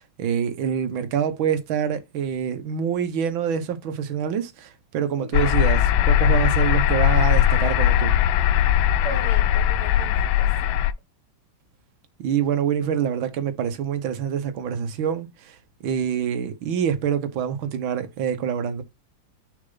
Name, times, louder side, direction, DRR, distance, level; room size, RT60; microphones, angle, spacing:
voice 1, 0.2-5.8 6.1-8.1 12.2-15.6 15.8-18.8, right 8 dB, 85° right, 1.8 m, -26 dB
voice 2, 5.2-5.5 9.0-10.8, right 2 dB, 35° right, 3.1 m, -38 dB
sound 1, 5.3-10.9, left 11 dB, 90° left, 1.4 m, -19 dB
6.5 x 4.5 x 3.9 m
omnidirectional pair, 2.1 m